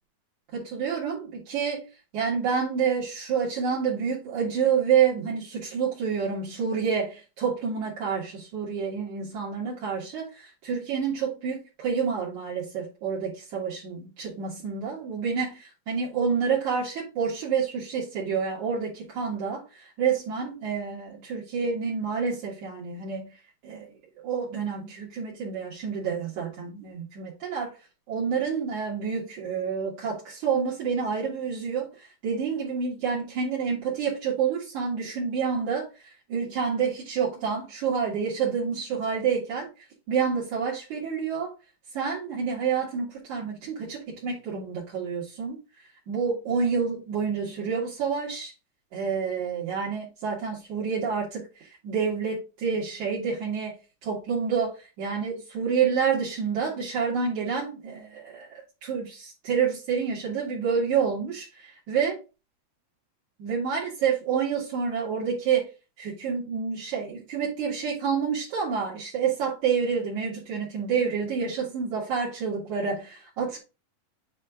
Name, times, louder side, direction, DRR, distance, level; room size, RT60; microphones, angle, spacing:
voice 1, 0.5-1.8 2.1-23.3 23.6-23.9 24.2-27.7 28.1-39.7 40.1-41.5 41.9-45.6 46.1-48.5 48.9-51.4 51.7-53.7 54.0-62.2 63.4-65.7 66.0-73.6, right 6 dB, 60° right, 3.0 m, -28 dB
9.1 x 3.3 x 3.7 m
omnidirectional pair, 4.1 m